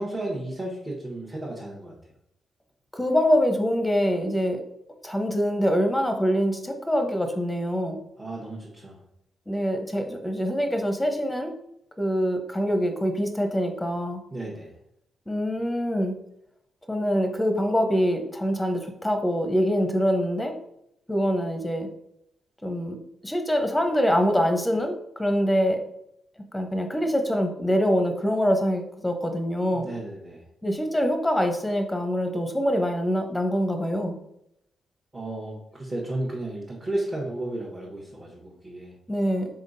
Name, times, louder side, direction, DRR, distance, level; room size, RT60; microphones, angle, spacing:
voice 1, 0.0-1.9 8.2-9.0 14.3-14.7 29.7-30.4 35.1-38.9, right 1 dB, 30° right, -5 dB, 1.3 m, -33 dB
voice 2, 2.9-4.6 5.0-8.0 9.5-11.5 12.0-14.2 15.3-16.1 16.9-20.5 21.1-21.9 22.6-23.0 23.2-25.8 26.5-29.9 30.6-34.2 39.1-39.5, equal, 10° left, 5 dB, 0.8 m, -24 dB
3.9 x 3.7 x 2.6 m, 0.78 s
hypercardioid pair, 40°, 0 cm